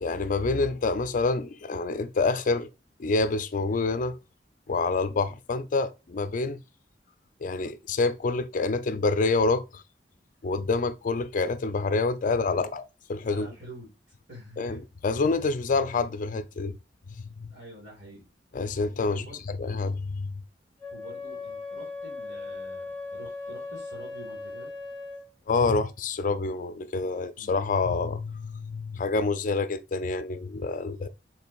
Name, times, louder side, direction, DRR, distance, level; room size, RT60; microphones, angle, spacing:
voice 1, 0.0-2.7 3.0-4.2 4.7-6.6 7.4-9.8 10.4-12.8 13.1-13.5 14.6-16.8 17.1-17.5 18.5-19.2 19.6-20.3 25.5-31.1, left 3 dB, 45° left, 0.4 m, -27 dB
voice 2, 13.3-13.9 14.3-14.8 17.4-18.2 19.1-19.5 20.9-24.7 27.4-27.6, equal, 70° right, 2.7 m, -47 dB
Wind instrument woodwind instrument, 20.8-25.3, left 3 dB, 10° left, 2.6 m, -38 dB
5.6 x 3.7 x 2.3 m
head